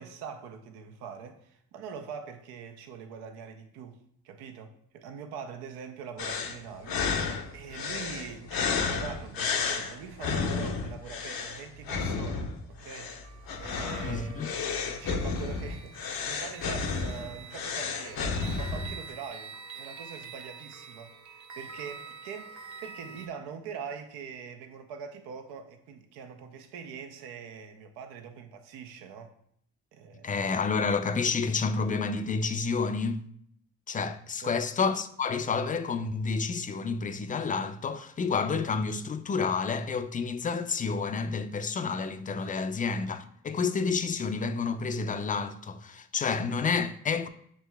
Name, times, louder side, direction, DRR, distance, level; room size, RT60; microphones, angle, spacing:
voice 1, 0.0-13.1 13.6-29.3 29.9-30.3 34.4-34.6 42.4-42.5, right 6 dB, 85° right, 0.6 m, -43 dB
sound 1, 6.2-19.1, left 5 dB, 65° left, 0.7 m, -32 dB
sound 2, 13.2-23.3, right 5 dB, 50° right, 0.8 m, -47 dB
voice 2, 14.0-14.5 30.2-33.2 33.9-47.3, left 5 dB, 20° left, 0.4 m, -29 dB
7.4 x 3.1 x 2.2 m
hypercardioid pair, 45°, 38 cm